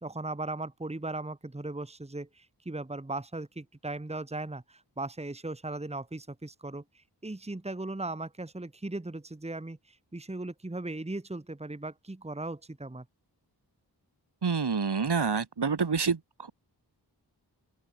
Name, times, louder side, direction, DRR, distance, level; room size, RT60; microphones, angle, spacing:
voice 1, 0.0-13.0, right 2 dB, 15° right, 1.6 m, -38 dB
voice 2, 14.4-16.5, right 5 dB, 70° right, 3.3 m, -28 dB
open air
cardioid pair, 55°, 42 cm